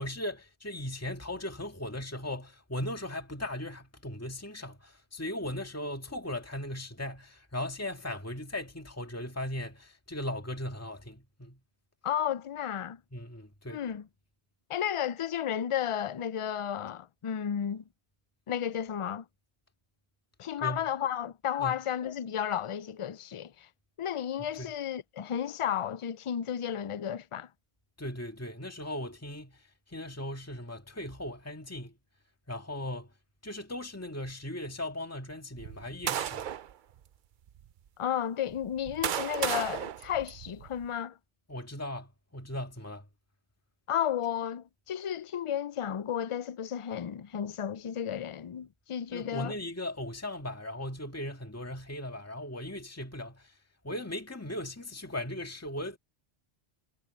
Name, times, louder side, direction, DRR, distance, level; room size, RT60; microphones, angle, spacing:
voice 1, 0.0-11.6 13.1-13.8 20.6-20.9 21.6-21.8 24.4-24.7 28.0-31.9 32.5-33.1 33.4-36.4 41.5-43.1 49.1-53.5 53.8-56.0, left 1 dB, 15° left, 2.0 m, -38 dB
voice 2, 12.0-13.0 13.7-14.1 14.7-17.8 18.5-19.2 20.4-23.7 24.0-27.5 38.0-41.2 43.9-49.5, left 9 dB, 55° left, 0.3 m, -33 dB
sound 1, 35.6-36.7 37.5-37.6 38.5-40.9, right 10 dB, 60° right, 0.6 m, -34 dB
omnidirectional pair, 1.1 m